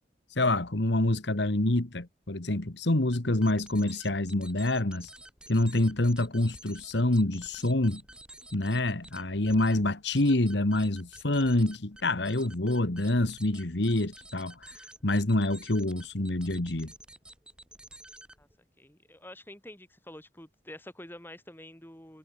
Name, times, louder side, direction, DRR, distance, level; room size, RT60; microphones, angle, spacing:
voice 1, 0.3-5.1 5.5-8.0 8.5-16.9, left 1 dB, 65° left, 1.7 m, -27 dB
sound 1, 3.1-18.6, right 1 dB, 5° right, 4.0 m, -51 dB
voice 2, 18.8-22.2, left 1 dB, 10° left, 4.8 m, -47 dB
head